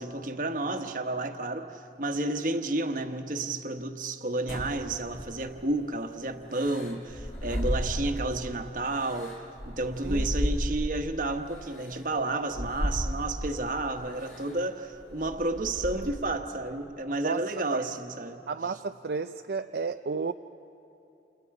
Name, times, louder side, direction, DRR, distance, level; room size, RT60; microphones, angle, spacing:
voice 1, 0.0-18.4, right 2 dB, 45° right, 6 dB, 1.2 m, -31 dB
sound 1, 4.5-5.7 6.5-8.4 8.9-11.1 11.8-11.9 12.5-13.6 14.2-14.5 14.9-16.3, equal, 45° left, 3.5 m, -33 dB
voice 2, 18.5-20.3, right 4 dB, 65° right, 8 dB, 0.4 m, -32 dB
29.0 x 29.0 x 4.9 m, 2.9 s
head